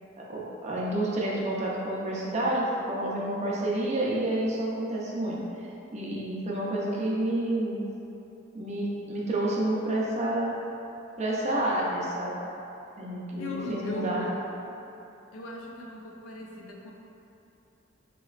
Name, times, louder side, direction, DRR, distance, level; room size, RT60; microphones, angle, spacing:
voice 1, 0.2-7.8 8.5-10.5 11.2-12.3 13.0-14.3, right 1 dB, 35° right, -4 dB, 0.5 m, -29 dB
voice 2, 13.4-14.4 15.3-16.9, left 2 dB, 75° left, -1 dB, 0.4 m, -37 dB
4.0 x 3.0 x 2.4 m, 2.9 s
head